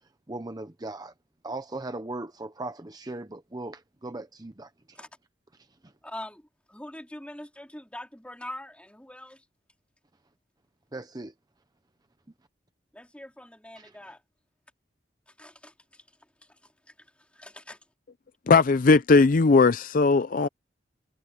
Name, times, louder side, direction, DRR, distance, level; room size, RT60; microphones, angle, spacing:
voice 1, 0.3-1.1 1.4-5.0 5.8-5.9 10.9-11.3 13.8-14.0, right 2 dB, 20° right, 0.8 m, -38 dB
voice 2, 6.0-9.4 12.9-14.2 15.3-16.0 16.4-17.8, left 1 dB, 5° left, 4.2 m, -44 dB
voice 3, 18.5-20.5, left 4 dB, 50° left, 0.5 m, -18 dB
head